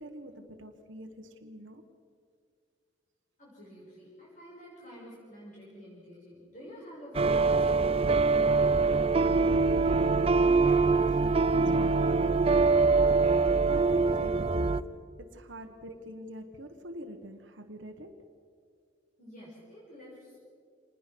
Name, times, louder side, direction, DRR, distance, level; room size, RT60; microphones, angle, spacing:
voice 1, 0.0-1.9 10.6-12.2 13.7-14.9 15.2-18.3, equal, 70° right, 5 dB, 1.5 m, -45 dB
voice 2, 3.4-8.7 19.2-20.4, equal, 40° left, -6 dB, 6.4 m, -49 dB
sound 1, 7.1-14.8, right 4 dB, 30° right, 0.5 m, -24 dB
26.5 x 20.0 x 6.2 m, 2.2 s
head